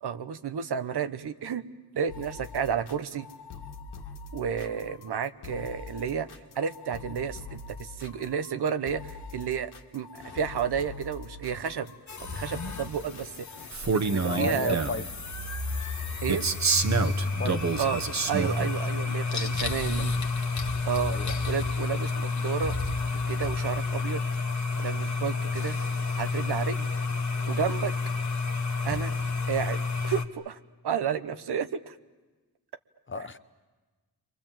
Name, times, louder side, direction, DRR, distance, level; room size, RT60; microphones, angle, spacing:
voice 1, 0.0-1.7 1.9-3.3 4.3-6.3 6.6-11.9 12.3-13.4 13.9-14.8 16.2-16.4 17.8-18.0 18.3-20.1 20.9-21.1 21.5-22.7 23.3-24.2 24.8-25.8 26.2-26.9 27.5-27.9 28.8-29.1 29.5-30.6 30.8-31.9, right 7 dB, 85° right, 1.1 m, -31 dB
sound 1, 2.1-13.7, left 4 dB, 85° left, 1.9 m, -44 dB
sound 2, 12.1-30.2, left 3 dB, 45° left, 1.6 m, -30 dB
Male speech man speaking, 13.7-15.1 16.3-18.7, right 4 dB, 45° right, 1.3 m, -27 dB
voice 2, 14.3-15.1 17.4-17.7 19.8-20.1 21.1-21.5 33.1-33.4, left 3 dB, 30° left, 0.9 m, -33 dB
30.0 x 24.0 x 7.5 m
wide cardioid pair, 120°, 39 cm